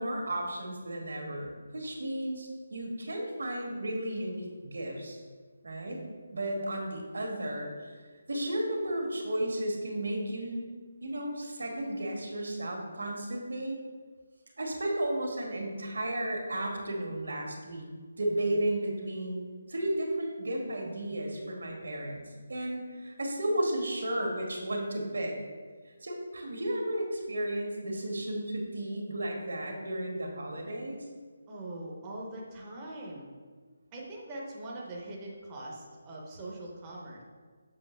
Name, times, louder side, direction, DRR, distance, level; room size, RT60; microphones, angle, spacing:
voice 1, 0.0-5.2 5.6-6.0 6.3-7.9 8.3-10.7 11.0-13.8 14.6-17.9 18.2-19.4 19.7-22.2 22.5-25.3 26.0-31.0, right 1 dB, 80° right, 1 dB, 1.9 m, -33 dB
voice 2, 31.5-33.3 33.9-37.2, right 1 dB, 10° right, -4 dB, 0.7 m, -42 dB
7.5 x 5.9 x 3.3 m, 1.5 s
hypercardioid pair, 180°, 0 cm